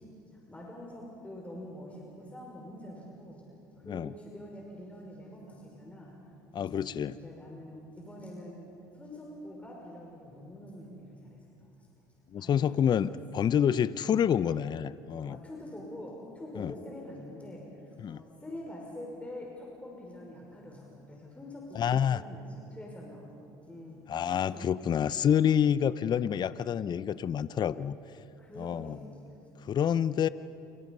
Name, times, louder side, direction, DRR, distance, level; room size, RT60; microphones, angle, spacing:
voice 1, 0.3-3.4 3.8-6.1 6.6-11.7 12.4-13.4 15.3-23.3 23.7-24.7 28.4-29.4, left 1 dB, 10° left, -2 dB, 5.7 m, -45 dB
voice 2, 6.5-7.2 12.3-15.4 16.6-16.7 18.0-18.2 21.7-22.2 24.1-28.0 28.6-29.0 29.6-30.3, left 9 dB, 45° left, 16 dB, 0.7 m, -28 dB
28.5 x 27.0 x 5.5 m, 2.6 s
hypercardioid pair, 70°, 10 cm